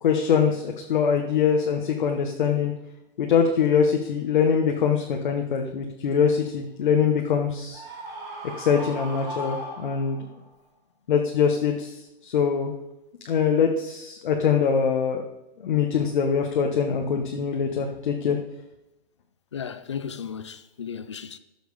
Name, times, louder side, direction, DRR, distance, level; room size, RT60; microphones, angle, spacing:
voice 1, 0.0-2.7 3.2-7.8 8.6-10.2 11.1-11.9 12.2-12.7 13.2-15.2 15.6-18.4, left 6 dB, 50° left, 1.3 m, -23 dB
Screaming, 7.7-10.4, equal, 10° right, 2.1 m, -37 dB
voice 2, 19.5-21.4, left 7 dB, 30° left, 0.4 m, -35 dB
14.0 x 6.3 x 4.9 m
hypercardioid pair, 170°, 31 cm